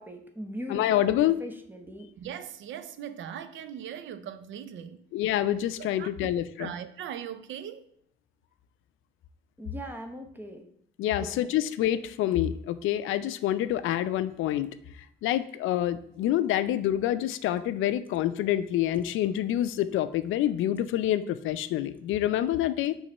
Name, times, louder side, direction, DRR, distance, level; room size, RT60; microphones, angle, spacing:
voice 1, 0.0-2.1 9.6-10.7 11.2-11.5, equal, 10° right, 0.9 m, -40 dB
voice 2, 0.7-1.4 5.1-6.7 11.0-14.7 15.2-23.0, left 12 dB, 85° left, 0.4 m, -27 dB
voice 3, 2.2-5.0 5.8-7.9, right 9 dB, 75° right, 0.6 m, -40 dB
6.5 x 3.2 x 5.3 m
cardioid pair, 90°, 20 cm